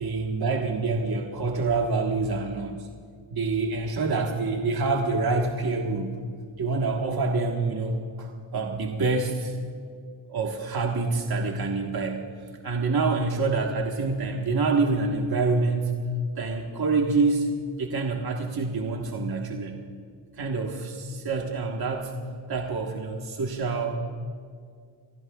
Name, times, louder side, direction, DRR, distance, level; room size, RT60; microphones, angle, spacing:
voice 1, 0.0-2.7 3.3-6.2 6.6-9.6 10.3-12.3 12.6-15.9 16.4-17.5 17.8-19.8 20.3-22.1 22.5-24.0, right 3 dB, 50° right, 1 dB, 1.5 m, -26 dB
28.5 x 15.0 x 2.4 m, 2.1 s
cardioid pair, 70°, 48 cm